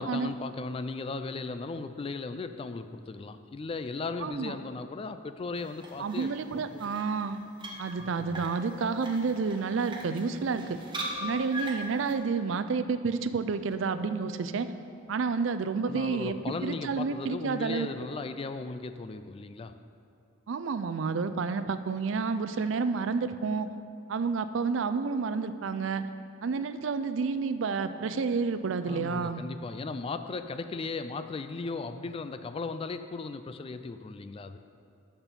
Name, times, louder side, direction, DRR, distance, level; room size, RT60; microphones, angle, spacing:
voice 1, 0.0-6.8 8.0-8.5 15.9-19.8 28.9-34.6, left 3 dB, 30° left, 10 dB, 0.3 m, -37 dB
voice 2, 4.2-4.5 6.0-7.4 7.8-10.8 11.2-14.7 15.1-16.4 16.6-17.9 20.5-23.7 24.1-26.0 26.4-29.4, right 5 dB, 65° right, 11 dB, 0.4 m, -30 dB
sound 1, 5.5-12.1, right 1 dB, 25° right, 1.0 m, -41 dB
sound 2, 8.6-10.0 10.2-10.3 11.0-12.1 13.7-15.0 16.5-17.5, left 1 dB, 90° left, 0.9 m, -51 dB
11.0 x 4.5 x 6.8 m, 2.5 s
head